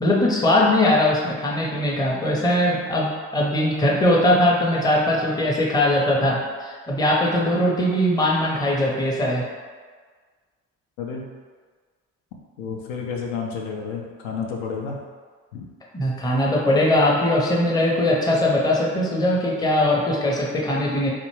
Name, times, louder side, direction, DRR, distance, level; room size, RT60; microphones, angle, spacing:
voice 1, 0.0-9.4 15.9-21.1, left 1 dB, 10° left, -3 dB, 0.5 m, -20 dB
voice 2, 12.6-15.0 15.5-15.7, left 5 dB, 75° left, 0 dB, 0.5 m, -30 dB
2.4 x 2.1 x 3.0 m, 1.5 s
hypercardioid pair, 55°, 42 cm